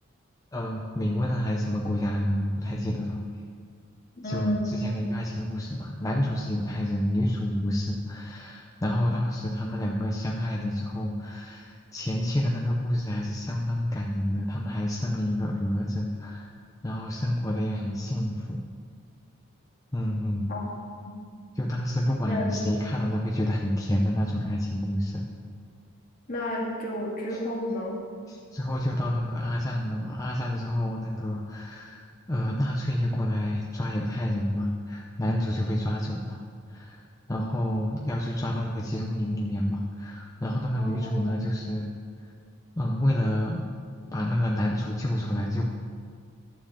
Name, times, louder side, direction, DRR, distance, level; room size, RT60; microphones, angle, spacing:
voice 1, 0.5-3.2 4.2-16.5 16.8-18.6 19.9-20.5 21.5-25.2 27.3-27.4 28.3-36.4 36.7-37.0 37.3-41.9 42.2-42.3 42.8-43.6 44.1-45.6, left 1 dB, 15° left, -2 dB, 0.6 m, -28 dB
voice 2, 4.2-4.9 20.5-20.8 21.1-21.2 22.3-22.6 26.3-28.0 40.8-41.5, equal, 45° left, -4 dB, 2.1 m, -32 dB
11.5 x 4.6 x 7.1 m, 2.2 s
head